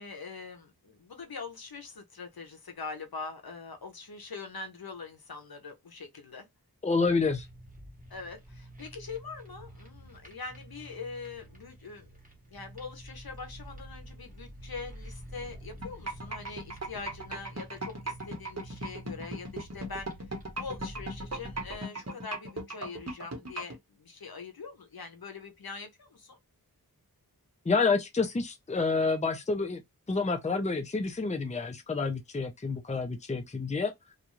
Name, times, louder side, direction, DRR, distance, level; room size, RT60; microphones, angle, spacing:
voice 1, 0.0-6.5 8.1-12.1 12.5-20.1 20.6-26.4, left 4 dB, 70° left, 0.8 m, -43 dB
voice 2, 6.8-7.5 27.7-29.8 30.1-33.9, left 4 dB, 20° left, 0.5 m, -28 dB
sound 1, 7.0-21.8, right 1 dB, 20° right, 1.0 m, -48 dB
sound 2, 15.8-23.8, right 1 dB, 45° right, 1.0 m, -36 dB
2.5 x 2.3 x 2.9 m
wide cardioid pair, 55°, 38 cm